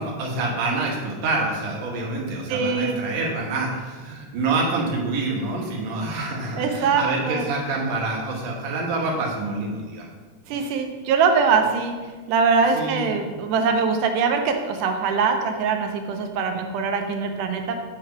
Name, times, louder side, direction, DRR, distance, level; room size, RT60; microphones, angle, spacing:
voice 1, 0.0-10.1 10.5-10.6 12.8-13.0, right 3 dB, 65° right, -2 dB, 2.3 m, -27 dB
voice 2, 2.5-3.0 6.6-7.5 10.5-12.0 12.3-17.8, right 5 dB, 85° right, 5 dB, 2.2 m, -22 dB
7.5 x 3.3 x 5.7 m, 1.4 s
omnidirectional pair, 3.6 m